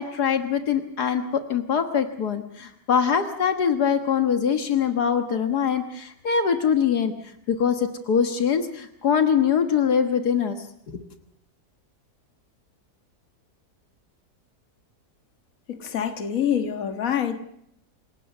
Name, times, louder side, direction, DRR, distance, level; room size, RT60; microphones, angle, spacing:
voice 1, 0.0-7.1 7.5-10.6 10.9-11.0, left 7 dB, 75° left, 8 dB, 1.9 m, -23 dB
voice 2, 15.7-17.4, left 8 dB, 60° left, 8 dB, 2.0 m, -26 dB
27.5 x 17.0 x 6.6 m, 0.75 s
omnidirectional pair, 1.7 m